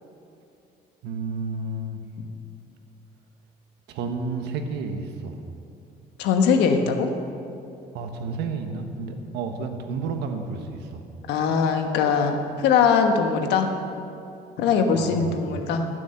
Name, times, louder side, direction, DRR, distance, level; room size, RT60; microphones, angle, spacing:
voice 1, 1.0-2.0 3.9-5.4 7.9-11.0 14.9-15.4, right 4 dB, 85° right, 5 dB, 1.3 m, -31 dB
voice 2, 6.2-7.1 11.3-13.7 14.6-15.9, left 6 dB, 85° left, 5 dB, 1.3 m, -21 dB
16.0 x 7.2 x 6.9 m, 2.7 s
cardioid pair, 110°, 17 cm